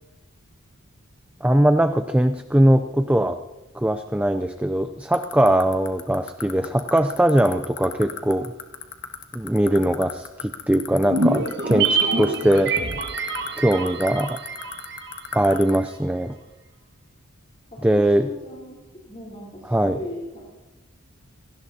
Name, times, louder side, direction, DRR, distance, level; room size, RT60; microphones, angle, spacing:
voice 1, 1.4-3.4 3.7-8.5 9.3-12.7 13.6-14.4 15.3-16.4 17.8-18.3 19.7-20.0, right 1 dB, 5° right, 9 dB, 0.4 m, -20 dB
sound 1, 5.1-15.8, left 8 dB, 55° left, 1.5 m, -32 dB
sound 2, 11.0-15.5 15.8-15.9, right 3 dB, 50° right, 1.5 m, -25 dB
voice 2, 17.7-20.6, left 1 dB, 30° left, -4 dB, 3.8 m, -38 dB
28.5 x 18.0 x 2.8 m, 1.1 s
head